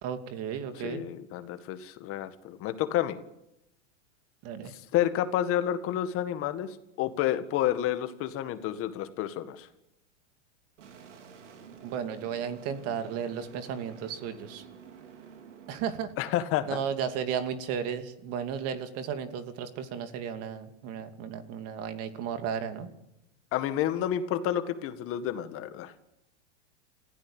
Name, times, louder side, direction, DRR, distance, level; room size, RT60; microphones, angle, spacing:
voice 1, 0.0-1.0 4.4-4.7 11.8-14.6 15.7-16.1 16.7-22.9, right 7 dB, 40° right, 8 dB, 2.6 m, -34 dB
voice 2, 0.8-3.2 4.7-6.7 7.0-9.7 16.2-16.8 23.5-25.9, left 11 dB, 40° left, 10 dB, 1.9 m, -30 dB
sound 1, 10.8-15.8, right 7 dB, 80° right, 4.3 m, -50 dB
28.0 x 16.0 x 9.0 m, 0.89 s
supercardioid pair, 130°, 36 cm